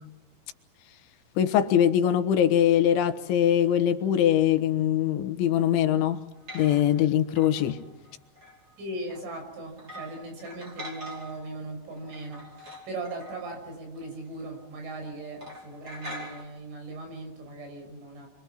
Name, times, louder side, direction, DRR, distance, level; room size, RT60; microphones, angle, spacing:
voice 1, 1.4-6.2 6.5-7.8, left 10 dB, 80° left, 3.6 m, -22 dB
sound 1, 6.4-7.1 7.4-8.7 9.1-9.3 9.8-11.6 11.9-14.3 14.5-14.7 14.9-15.1 15.4-16.4, equal, 20° right, 5.0 m, -44 dB
voice 2, 8.8-18.3, right 2 dB, 80° right, 8.5 m, -39 dB
29.0 x 23.5 x 6.0 m
omnidirectional pair, 5.5 m